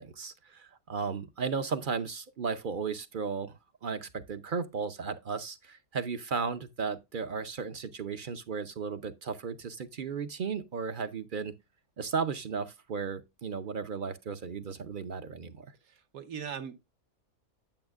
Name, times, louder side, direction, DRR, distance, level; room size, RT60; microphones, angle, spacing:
voice 1, 0.0-11.5 12.0-15.7, right 5 dB, 50° right, 0.6 m, -35 dB
voice 2, 15.8-16.8, right 7 dB, 80° right, 1.4 m, -40 dB
8.9 x 8.6 x 2.4 m
omnidirectional pair, 1.5 m